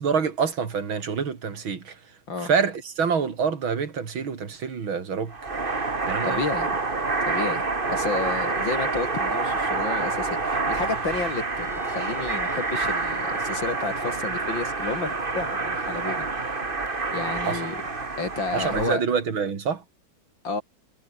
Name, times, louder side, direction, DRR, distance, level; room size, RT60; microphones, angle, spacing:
voice 1, 0.0-2.0 2.4-5.3 6.1-6.4 17.4-17.6 18.5-19.8, right 6 dB, 85° right, 3.3 m, -26 dB
sound 1, 5.3-18.9, right 3 dB, 25° right, 2.1 m, -27 dB
voice 2, 6.2-6.8 7.3-16.3 17.1-17.8 18.2-19.0 20.4-20.6, left 3 dB, 70° left, 4.9 m, -31 dB
Trumpet, 11.5-16.7, left 2 dB, 40° left, 5.6 m, -48 dB
omnidirectional pair, 2.2 m